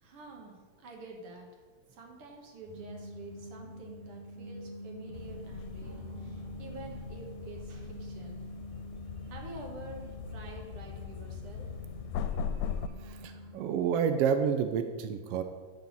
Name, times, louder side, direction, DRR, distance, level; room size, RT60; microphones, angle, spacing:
voice 1, 0.0-1.5 1.9-8.4 9.3-11.7, right 3 dB, 55° right, 1 dB, 2.1 m, -48 dB
sound 1, 2.6-13.5, left 1 dB, 30° right, 1.2 m, -46 dB
sound 2, 5.1-12.9, left 7 dB, 85° left, 1.9 m, -40 dB
voice 2, 13.0-15.4, right 7 dB, 85° right, 8 dB, 1.3 m, -29 dB
9.6 x 4.1 x 7.1 m, 1.4 s
omnidirectional pair, 3.4 m